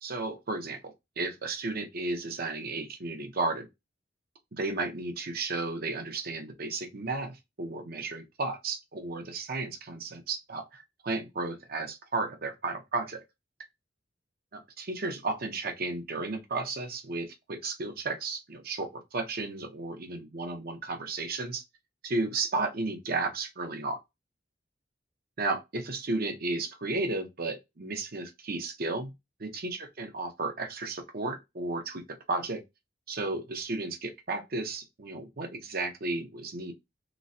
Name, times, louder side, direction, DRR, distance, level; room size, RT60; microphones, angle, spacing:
voice 1, 0.0-3.7 4.5-13.2 14.5-21.6 22.0-24.0 25.4-29.1 29.4-32.6 33.1-36.7, right 3 dB, 55° right, 0.8 m, -33 dB
3.1 x 3.1 x 2.7 m
head